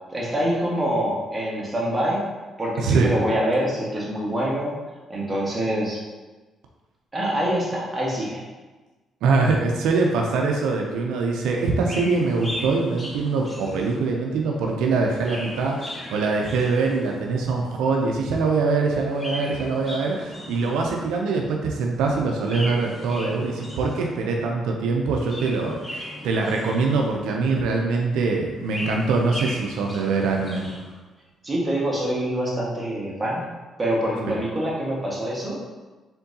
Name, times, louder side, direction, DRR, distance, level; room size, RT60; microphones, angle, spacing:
voice 1, 0.1-2.3 2.6-4.7 5.1-6.0 7.1-8.4 31.4-33.5 33.8-35.6, right 1 dB, 20° right, -5 dB, 1.4 m, -25 dB
voice 2, 2.8-3.1 9.2-30.7 34.2-34.4, right 4 dB, 90° right, 0 dB, 0.5 m, -23 dB
Chirp tweet, 11.8-14.3 15.0-17.4 18.9-21.1 22.4-24.3 25.1-27.3 28.4-30.9, left 1 dB, 20° left, 1.0 m, -37 dB
4.4 x 3.7 x 2.7 m, 1.2 s
cardioid pair, 90°, 0 cm